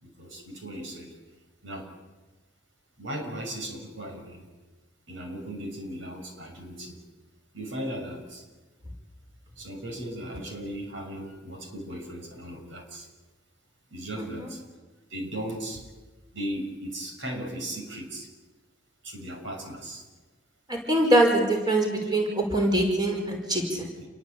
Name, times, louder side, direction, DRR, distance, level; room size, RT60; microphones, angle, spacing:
voice 1, 0.0-1.1 1.6-1.9 3.0-4.5 5.1-7.0 7.5-8.4 9.6-13.1 13.9-14.6 15.1-15.8 16.3-18.3 19.0-20.0 23.8-24.1, right 1 dB, 70° right, 3 dB, 6.3 m, -37 dB
voice 2, 14.2-14.5 20.7-23.9, right 1 dB, 20° right, 2 dB, 5.3 m, -24 dB
28.5 x 22.5 x 8.6 m, 1.2 s
head